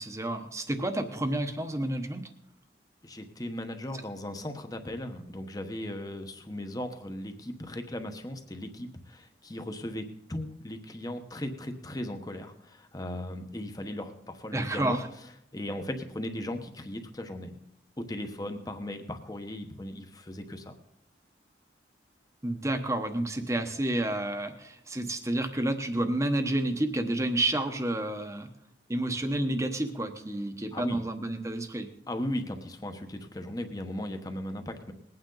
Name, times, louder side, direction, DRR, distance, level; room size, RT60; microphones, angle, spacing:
voice 1, 0.0-2.3 14.5-15.1 22.4-28.5 28.9-31.9, right 1 dB, 15° right, 7 dB, 1.0 m, -30 dB
voice 2, 3.0-15.0 15.5-17.6 18.0-20.7 30.7-31.0 32.1-34.9, left 1 dB, 20° left, 6 dB, 1.1 m, -37 dB
20.5 x 9.0 x 3.9 m, 0.77 s
head